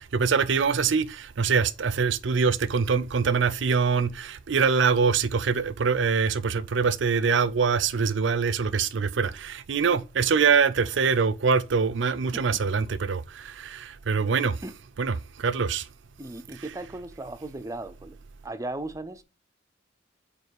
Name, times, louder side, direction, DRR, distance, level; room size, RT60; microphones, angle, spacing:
voice 1, 0.0-14.6 15.0-15.9, right 5 dB, 70° right, 0.5 m, -24 dB
voice 2, 16.2-18.2 18.4-19.2, right 2 dB, 15° right, 0.5 m, -37 dB
5.5 x 4.2 x 4.7 m
head